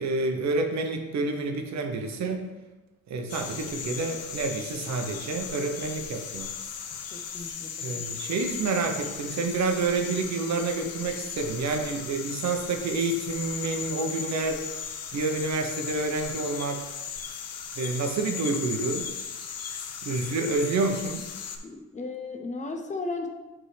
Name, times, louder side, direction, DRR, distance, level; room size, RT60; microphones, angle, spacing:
voice 1, 0.0-2.4 3.1-6.5 7.8-14.7 15.1-16.9 17.8-19.1 20.1-21.2, right 3 dB, 65° right, 4 dB, 0.9 m, -28 dB
sound 1, 3.3-21.6, left 7 dB, 55° left, 0.7 m, -37 dB
voice 2, 7.1-8.1 21.6-23.3, left 3 dB, 25° left, 4 dB, 0.8 m, -35 dB
8.0 x 3.7 x 3.3 m, 1.1 s
cardioid pair, 90°, 30 cm